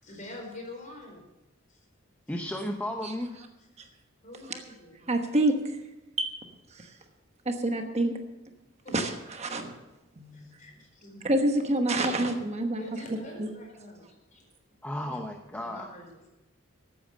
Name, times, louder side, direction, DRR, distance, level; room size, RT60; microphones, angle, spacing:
voice 1, 0.0-1.2 1.7-1.8 3.7-3.9 4.2-5.0 8.8-9.0 10.3-11.2 12.8-14.4 15.0-15.2 15.5-16.3, left 2 dB, 40° left, 1 dB, 4.5 m, -45 dB
voice 2, 2.3-3.4 14.8-15.9, left 1 dB, 10° left, 3 dB, 0.8 m, -34 dB
voice 3, 5.1-5.6 6.2-6.3 6.7-6.9 7.4-8.1 8.9-9.1 9.4-9.7 10.2-10.6 11.2-12.8 13.4-13.5, right 1 dB, 35° right, 5 dB, 1.2 m, -27 dB
14.0 x 9.0 x 6.4 m, 1.0 s
head